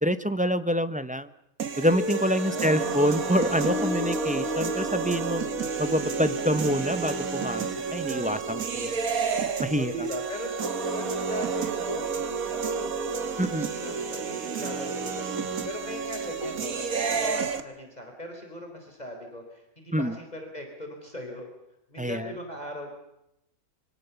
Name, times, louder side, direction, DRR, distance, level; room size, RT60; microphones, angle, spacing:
voice 1, 0.0-1.3 1.8-5.4 5.8-8.9 9.6-10.1 13.4-13.7 19.9-20.2 22.0-22.3, equal, 5° right, 11 dB, 0.8 m, -26 dB
sound 1, 1.6-17.6, right 5 dB, 80° right, 2.0 m, -30 dB
Guitar, 1.9-8.6, left 3 dB, 85° left, 3.2 m, -36 dB
voice 2, 2.1-3.0 8.1-8.4 9.7-10.6 10.8-13.0 13.5-21.5 21.9-22.9, equal, 30° left, 3 dB, 4.2 m, -39 dB
26.0 x 24.5 x 7.0 m, 0.83 s
omnidirectional pair, 1.5 m